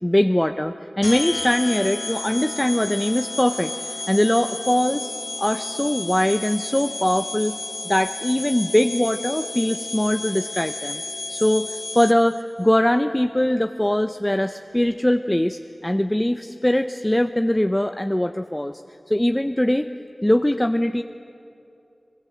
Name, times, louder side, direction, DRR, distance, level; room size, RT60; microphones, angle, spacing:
voice 1, 0.0-5.1 5.4-7.6 7.8-11.0 11.3-18.8 19.1-19.9 20.2-21.0, left 1 dB, 15° left, 8 dB, 0.7 m, -21 dB
sound 1, 1.0-12.4, left 3 dB, 60° left, 0.6 m, -32 dB
22.5 x 21.5 x 7.8 m, 2.7 s
cardioid pair, 40°, 0 cm